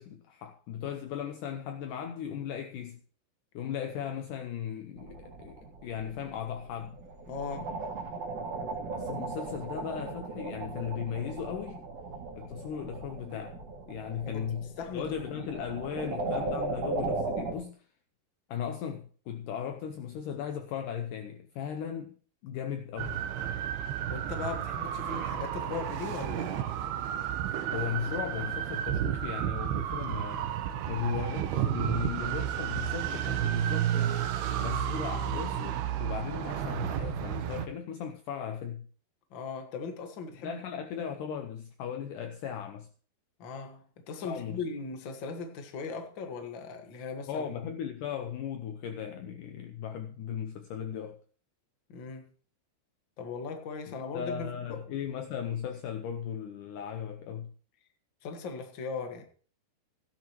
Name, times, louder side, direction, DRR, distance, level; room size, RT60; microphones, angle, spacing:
voice 1, 0.0-3.0 3.5-7.0 8.9-11.8 12.4-13.6 13.9-14.7 14.9-17.8 18.5-22.2 22.4-23.2 27.7-30.5 30.9-34.3 34.6-38.9 40.4-42.9 44.2-44.6 47.3-51.2 53.9-57.5, left 8 dB, 85° left, 1.8 m, -37 dB
sound 1, 5.0-17.5, right 3 dB, 45° right, 2.9 m, -37 dB
voice 2, 7.3-7.8 14.2-14.5 14.8-15.5 24.1-26.7 39.3-40.6 43.4-47.6 51.9-52.3 53.2-54.9 58.2-59.2, left 5 dB, 55° left, 1.3 m, -39 dB
sound 2, 23.0-37.7, right 11 dB, 80° right, 2.8 m, -32 dB
16.5 x 10.5 x 3.0 m
omnidirectional pair, 4.7 m